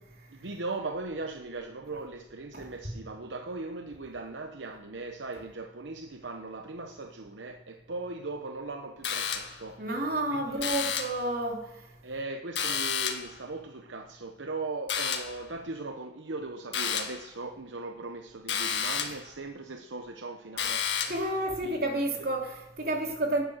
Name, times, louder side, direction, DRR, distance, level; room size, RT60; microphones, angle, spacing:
voice 1, 0.3-9.9 10.3-10.6 12.0-21.1 21.6-21.8, right 3 dB, 75° right, 0.9 m, -39 dB
sound 1, 9.0-9.7 10.6-11.3 12.6-13.4 14.9-15.4 16.7-17.3 18.5-19.3 20.6-21.3, left 7 dB, 70° left, 1.9 m, -31 dB
voice 2, 9.8-11.7 21.1-23.4, right 1 dB, 50° right, 3.3 m, -30 dB
18.5 x 10.5 x 6.4 m
head